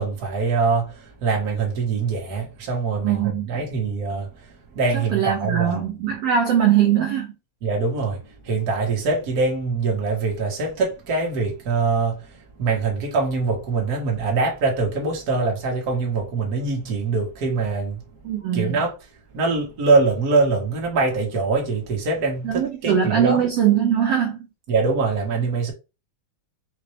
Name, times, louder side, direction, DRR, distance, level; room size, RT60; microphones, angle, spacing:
voice 1, 0.0-5.8 7.6-18.0 18.5-18.9 19.3-23.4 24.7-25.7, right 4 dB, 50° right, 1.2 m, -23 dB
voice 2, 3.0-3.6 4.9-7.3 18.2-18.8 22.4-24.4, right 9 dB, 70° right, 1.5 m, -21 dB
5.8 x 2.6 x 3.2 m
omnidirectional pair, 3.8 m